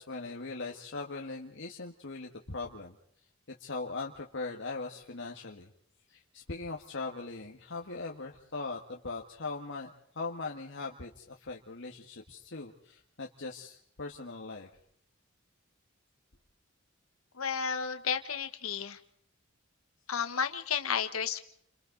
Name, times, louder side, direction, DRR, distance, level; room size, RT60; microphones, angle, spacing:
voice 1, 0.0-3.0 3.6-5.7 6.1-14.7, left 3 dB, 60° left, 0 dB, 1.7 m, -40 dB
voice 2, 17.3-19.0 20.1-21.4, left 7 dB, 75° left, 8 dB, 1.4 m, -32 dB
30.0 x 26.5 x 4.0 m, 0.68 s
head